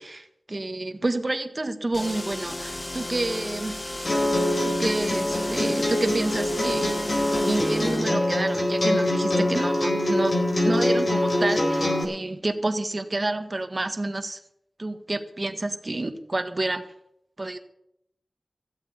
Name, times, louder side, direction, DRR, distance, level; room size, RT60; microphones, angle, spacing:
voice 1, 0.0-3.9 4.6-7.0 7.5-10.4 10.6-14.4 14.8-16.8 17.4-17.6, right 2 dB, 40° right, 8 dB, 1.5 m, -29 dB
sound 1, 1.9-8.1, left 1 dB, 30° left, 1.8 m, -34 dB
sound 2, 4.1-12.0, left 1 dB, 45° left, 3.9 m, -24 dB
15.0 x 8.2 x 8.3 m, 0.77 s
wide cardioid pair, 60°, 0 cm